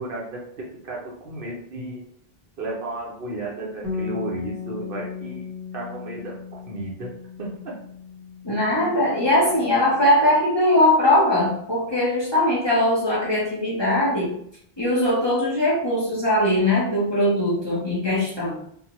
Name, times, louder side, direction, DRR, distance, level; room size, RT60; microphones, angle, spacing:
voice 1, 0.0-2.0 2.6-5.5 5.7-7.1 7.4-7.8, right 2 dB, 65° right, -3 dB, 0.9 m, -33 dB
Bass guitar, 3.8-10.1, left 6 dB, 35° right, 0.7 m, -36 dB
voice 2, 8.4-14.3 14.8-18.6, left 1 dB, 30° left, -7 dB, 0.8 m, -20 dB
2.6 x 2.2 x 2.9 m, 0.68 s
omnidirectional pair, 1.0 m